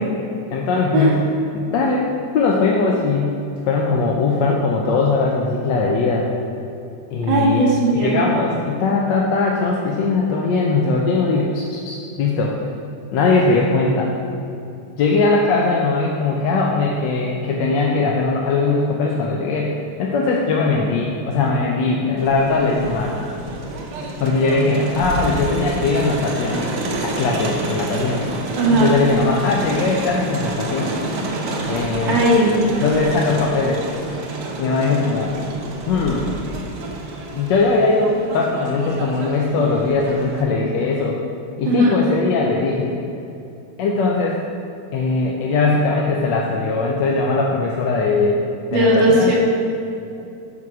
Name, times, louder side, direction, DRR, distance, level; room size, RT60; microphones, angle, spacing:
voice 1, 0.5-1.2 1.5-2.1 2.3-3.4 3.7-6.3 7.1-7.7 7.9-12.5 13.1-14.1 15.0-23.1 24.2-26.6 27.0-28.2 28.7-30.9 31.7-32.2 32.8-33.8 34.6-35.3 35.9-36.3 37.3-41.2 41.6-43.0 43.8-44.4 44.9-48.4 48.7-49.3, left 3 dB, 85° left, -1 dB, 1.3 m, -20 dB
voice 2, 7.3-8.2 28.6-28.9 32.1-32.6 41.7-42.0 48.7-49.4, right 1 dB, 90° right, -4 dB, 1.8 m, -17 dB
Crowd, 22.2-40.4, right 2 dB, 70° right, 1.4 m, -29 dB
5.9 x 4.5 x 6.0 m, 2.7 s
omnidirectional pair, 1.9 m